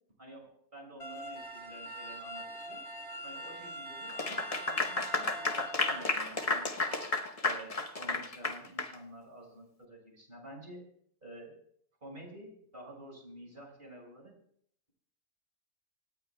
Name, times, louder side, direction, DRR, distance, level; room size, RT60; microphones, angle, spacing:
voice 1, 0.2-2.8 3.2-7.0 7.4-10.8 11.2-11.6 12.0-14.4, right 1 dB, 30° right, 0 dB, 6.2 m, -50 dB
sound 1, 1.0-6.0, equal, 45° left, 1.9 m, -44 dB
sound 2, 1.2-7.1, right 9 dB, 65° right, 7.8 m, -51 dB
Clapping / Applause, 4.1-8.9, left 3 dB, 25° left, 0.9 m, -32 dB
26.0 x 18.5 x 2.3 m, 0.65 s
omnidirectional pair, 1.6 m